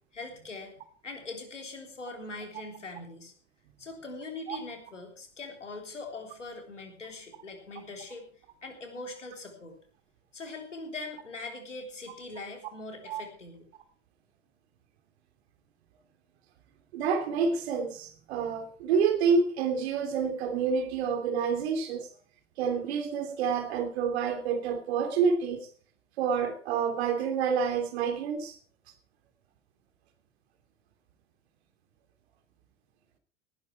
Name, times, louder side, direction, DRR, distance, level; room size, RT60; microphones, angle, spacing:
voice 1, 0.1-0.7 1.0-3.3 3.8-8.3 8.6-9.8 10.3-13.7, left 3 dB, 85° left, 3.8 m, -42 dB
voice 2, 16.9-22.1 22.6-25.7 26.2-28.6, right 6 dB, 60° right, 3.2 m, -28 dB
18.0 x 11.5 x 4.6 m
figure-of-eight pair, 85°, 36 cm